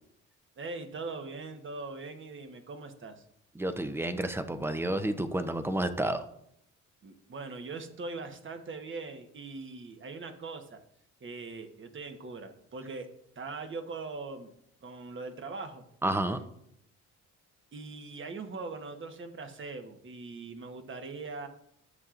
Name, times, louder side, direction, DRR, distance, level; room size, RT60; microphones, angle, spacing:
voice 1, 0.6-3.2 7.0-10.8 11.2-13.1 13.3-14.5 14.8-15.8 17.7-21.5, right 3 dB, 40° right, 6 dB, 1.2 m, -41 dB
voice 2, 3.6-6.3 16.0-16.4, right 1 dB, 10° right, 10 dB, 0.7 m, -30 dB
13.5 x 7.4 x 2.5 m, 0.74 s
cardioid pair, 90°, 30 cm